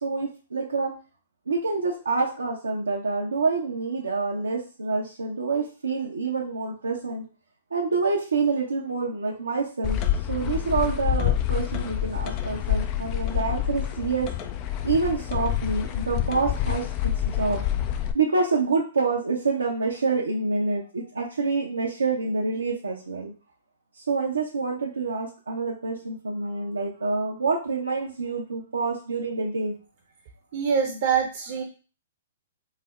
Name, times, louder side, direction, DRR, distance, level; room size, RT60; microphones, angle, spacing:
voice 1, 0.0-0.9 1.5-7.2 7.7-10.0 10.3-14.3 14.8-16.8 17.4-17.6 18.1-23.3 24.1-29.7, right 4 dB, 90° right, -3 dB, 0.7 m, -27 dB
sound 1, 9.8-18.1, left 11 dB, 35° left, 0.4 m, -27 dB
voice 2, 30.5-31.6, right 7 dB, 50° right, 1 dB, 0.7 m, -24 dB
3.2 x 2.0 x 3.6 m, 0.35 s
hypercardioid pair, 125°, 0 cm